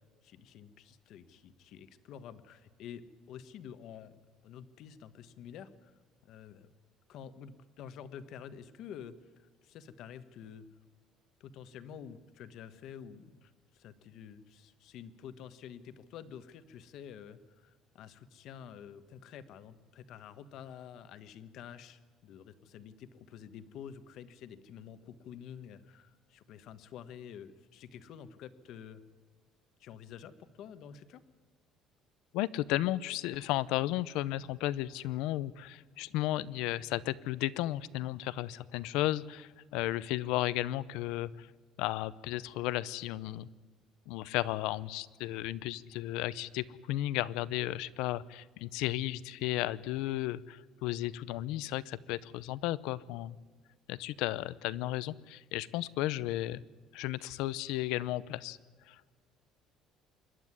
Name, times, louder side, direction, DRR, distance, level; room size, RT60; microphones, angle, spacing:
voice 1, 0.2-6.0 6.2-6.7 7.1-10.7 11.4-29.0 29.8-31.2, left 8 dB, 50° left, 12 dB, 1.2 m, -49 dB
voice 2, 32.3-41.5 41.8-43.5 44.1-53.4 53.9-56.6 56.9-58.6 58.9-59.1, left 15 dB, 80° left, 19 dB, 0.7 m, -34 dB
26.5 x 11.5 x 9.7 m, 1.5 s
cardioid pair, 180°, 0 cm